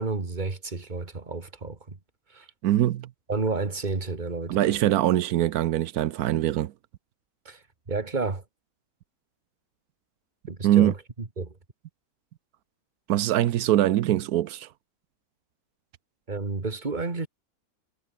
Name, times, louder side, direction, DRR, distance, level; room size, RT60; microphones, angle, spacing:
voice 1, 0.0-2.0 2.3-2.5 3.3-4.8 7.5-8.4 10.5-10.9 11.4-11.6 16.3-17.3, right 3 dB, 30° right, 2.2 m, -31 dB
voice 2, 2.6-3.1 4.5-6.7 10.6-10.9 13.1-14.7, right 13 dB, 85° right, 1.2 m, -23 dB
omnidirectional pair, 1.5 m